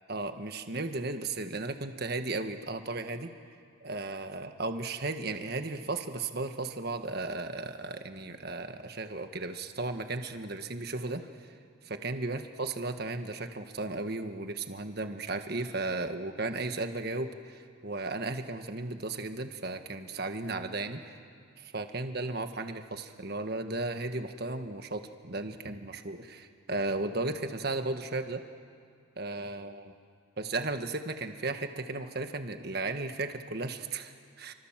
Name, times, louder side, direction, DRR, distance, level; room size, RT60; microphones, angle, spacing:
voice 1, 0.1-3.3 3.8-11.3 11.8-21.2 21.6-28.4 29.2-29.9 30.4-34.5, right 2 dB, 50° right, 7 dB, 1.5 m, -35 dB
Piano, 20.4-22.6, equal, 10° left, 3.9 m, -57 dB
29.0 x 25.5 x 7.5 m, 2.3 s
head